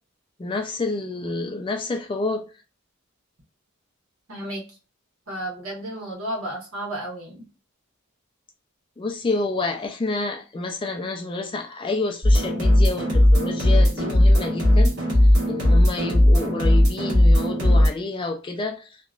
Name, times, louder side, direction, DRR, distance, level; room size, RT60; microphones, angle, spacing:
voice 1, 0.4-2.5 9.0-15.0 15.5-19.1, left 3 dB, 25° left, 0.3 m, -29 dB
voice 2, 4.3-4.8 5.3-7.5, right 1 dB, 75° right, 1.2 m, -32 dB
sound 1, 12.2-17.9, left 1 dB, 55° right, 1.5 m, -17 dB
2.9 x 2.2 x 2.4 m
head